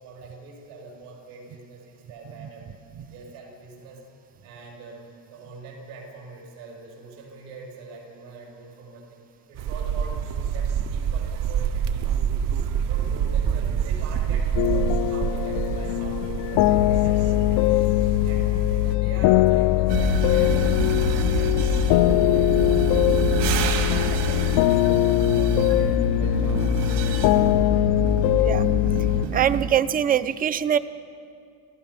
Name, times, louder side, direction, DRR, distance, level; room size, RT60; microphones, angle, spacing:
voice 1, 0.0-2.7 3.1-4.0 4.4-9.2 9.5-12.1 12.4-17.9 18.2-18.5 18.7-23.1 23.4-24.6 24.9-27.3, right 3 dB, 85° right, -1 dB, 6.9 m, -42 dB
sound 1, 9.6-18.9, right 8 dB, 50° right, 0.7 m, -27 dB
sound 2, 14.6-29.3, left 16 dB, 60° left, 0.5 m, -21 dB
sound 3, 19.9-29.7, right 7 dB, 70° right, 2.4 m, -28 dB
voice 2, 28.3-28.6 29.3-30.8, right 9 dB, 20° right, 14 dB, 0.4 m, -23 dB
29.0 x 16.0 x 5.8 m, 2.5 s
cardioid pair, 150°, 43 cm